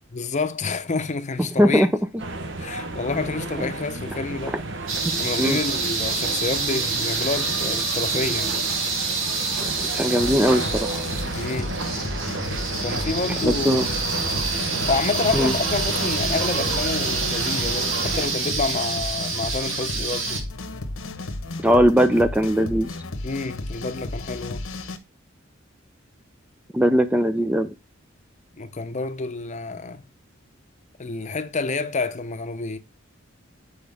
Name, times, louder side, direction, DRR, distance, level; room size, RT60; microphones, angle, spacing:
voice 1, 0.1-1.9 2.6-4.6 5.2-8.5 11.3-11.8 12.8-14.0 14.9-20.4 23.2-24.7 28.5-30.0 31.0-32.8, left 3 dB, 35° left, 0.7 m, -28 dB
voice 2, 1.6-1.9 3.6-3.7 4.5-4.6 5.4-5.6 9.6-11.0 13.4-13.9 15.3-15.5 21.6-22.9 26.7-27.7, equal, 5° right, 0.4 m, -20 dB
sound 1, 2.2-18.3, right 2 dB, 65° right, 1.0 m, -32 dB
sound 2, 4.9-20.4, right 4 dB, 85° right, 1.7 m, -27 dB
sound 3, 10.2-25.0, left 2 dB, 85° left, 1.0 m, -33 dB
8.3 x 4.8 x 3.4 m
head